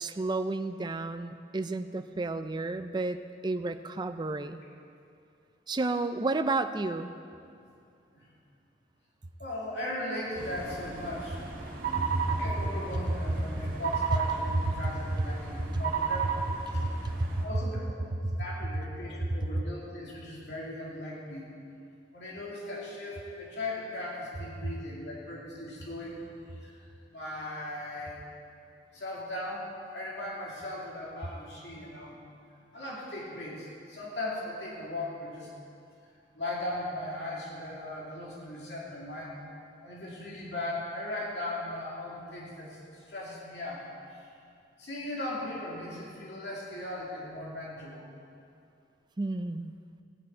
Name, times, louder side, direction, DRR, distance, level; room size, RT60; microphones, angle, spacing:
voice 1, 0.0-4.6 5.7-7.1 12.0-12.2 14.7-14.8 16.7-17.4 18.2-18.4 19.3-19.4 49.2-49.7, right 2 dB, 25° right, 9 dB, 0.4 m, -31 dB
voice 2, 9.4-11.4 12.3-16.3 17.4-18.0 18.3-21.5 22.1-28.2 28.9-32.3 32.7-35.5 36.3-39.4 39.8-44.3 44.8-48.1, left 1 dB, 70° left, -5 dB, 2.6 m, -38 dB
sound 1, 10.4-17.4, right 5 dB, 50° right, 2.3 m, -34 dB
18.0 x 9.2 x 4.4 m, 2.5 s
head